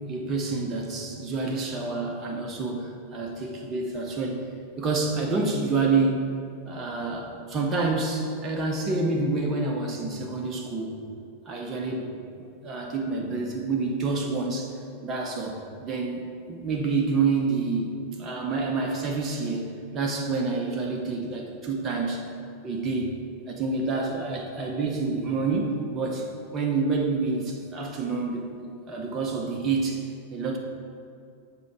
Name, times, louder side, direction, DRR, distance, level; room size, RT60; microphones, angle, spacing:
voice 1, 0.0-4.4 4.8-6.2 6.7-11.1 11.5-12.1 12.4-14.8 15.0-22.3 22.6-23.1 23.5-26.3 26.5-28.5 28.9-30.6, right 3 dB, 25° right, 0 dB, 0.8 m, -28 dB
7.3 x 3.7 x 4.6 m, 2.4 s
figure-of-eight pair, 90°, 0 cm